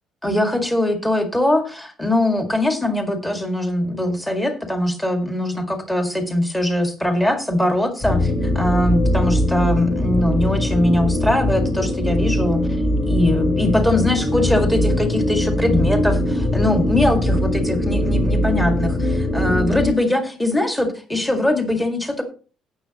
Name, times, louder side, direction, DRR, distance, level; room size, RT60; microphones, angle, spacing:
voice 1, 0.2-12.6 13.0-22.2, left 1 dB, 5° left, 4 dB, 1.9 m, -21 dB
sound 1, 8.0-19.9, left 1 dB, 25° left, 3.2 m, -21 dB
17.5 x 7.2 x 2.9 m, 0.36 s
cardioid pair, 170°, 0 cm